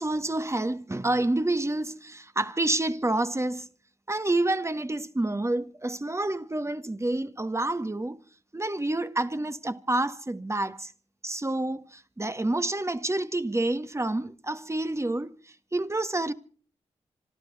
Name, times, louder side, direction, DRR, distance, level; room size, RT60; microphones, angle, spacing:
voice 1, 0.0-3.7 4.1-8.2 8.5-10.9 11.2-16.3, right 2 dB, 20° right, 1.8 m, -28 dB
26.5 x 12.0 x 4.2 m
supercardioid pair, 40°, 12 cm